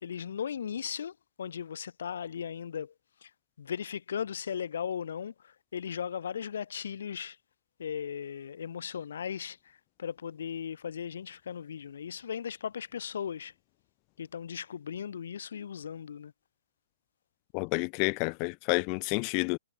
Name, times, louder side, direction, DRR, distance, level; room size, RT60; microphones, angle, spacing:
voice 1, 0.0-2.9 3.2-3.3 3.6-7.4 7.8-13.5 14.2-16.3, left 8 dB, 75° left, 3.1 m, -37 dB
voice 2, 17.5-19.6, left 39 dB, 35° left, 4.3 m, -29 dB
hypercardioid pair, 145°, 0 cm